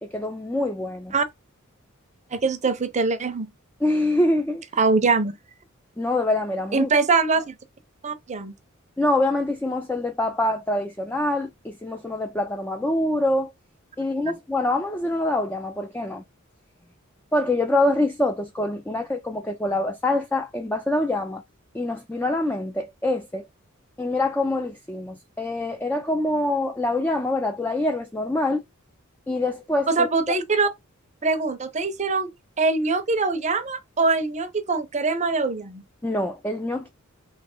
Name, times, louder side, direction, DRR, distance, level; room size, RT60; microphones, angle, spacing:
voice 1, 0.0-1.1 3.8-4.6 6.0-6.9 9.0-13.5 14.0-16.2 17.3-21.4 21.7-23.5 24.0-28.6 29.3-30.1 36.0-36.9, left 1 dB, 10° left, 0.4 m, -25 dB
voice 2, 2.3-3.5 4.8-5.3 6.7-7.5 8.0-8.5 29.9-30.7 31.2-32.3 32.6-35.8, right 4 dB, 35° right, 0.6 m, -23 dB
3.2 x 2.9 x 4.3 m
head